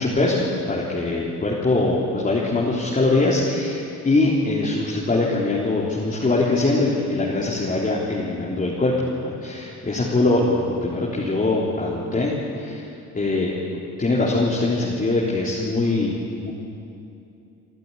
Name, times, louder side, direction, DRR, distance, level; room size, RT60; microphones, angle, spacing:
voice 1, 0.0-12.9 13.1-13.5 14.0-16.5, left 2 dB, 25° left, -5 dB, 3.7 m, -22 dB
27.5 x 12.0 x 9.8 m, 2.7 s
cardioid pair, 90°, 30 cm